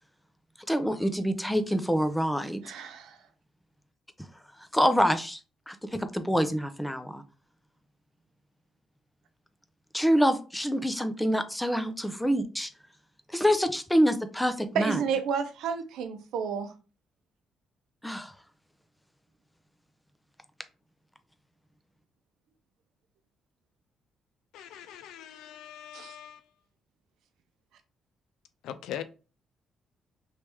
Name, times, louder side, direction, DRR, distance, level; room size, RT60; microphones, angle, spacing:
voice 1, 0.7-2.6 4.7-5.4 5.7-7.2 9.9-12.7 13.3-15.0 18.0-18.3, equal, 5° left, 0.5 m, -26 dB
voice 2, 2.6-3.2 14.7-16.7 25.9-26.1, right 6 dB, 85° right, 0.6 m, -31 dB
voice 3, 24.5-26.4 28.6-29.0, left 10 dB, 85° left, 0.4 m, -41 dB
3.2 x 2.9 x 3.4 m
cardioid pair, 90°, 0 cm